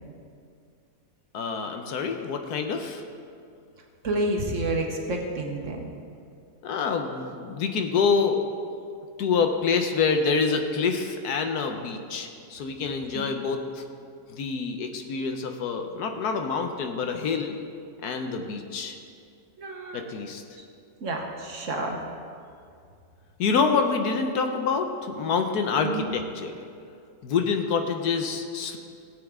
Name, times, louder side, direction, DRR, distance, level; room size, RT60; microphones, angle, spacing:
voice 1, 1.3-3.0 6.6-8.4 9.2-13.8 14.3-17.5 18.0-19.0 19.9-20.4 23.4-26.5 27.2-28.8, left 5 dB, 70° left, 5 dB, 1.3 m, -26 dB
voice 2, 4.0-5.9 13.1-13.3 19.6-20.1 21.0-22.0 25.8-26.1, right 2 dB, 50° right, 1 dB, 1.4 m, -29 dB
17.5 x 8.0 x 3.6 m, 2.4 s
omnidirectional pair, 1.8 m